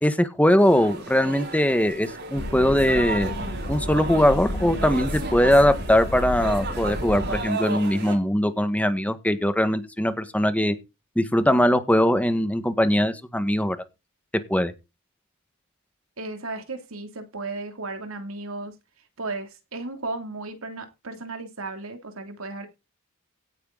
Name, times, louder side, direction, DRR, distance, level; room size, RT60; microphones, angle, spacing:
voice 1, 0.0-3.3 3.7-10.8 11.2-13.8 14.5-14.7, equal, 5° left, 1.7 m, -21 dB
sound 1, 0.6-8.2, right 3 dB, 55° right, 5.0 m, -34 dB
sound 2, 2.3-7.4, left 1 dB, 60° left, 2.7 m, -32 dB
voice 2, 16.2-18.7 19.2-22.7, right 3 dB, 80° right, 3.1 m, -35 dB
17.0 x 9.4 x 4.1 m
head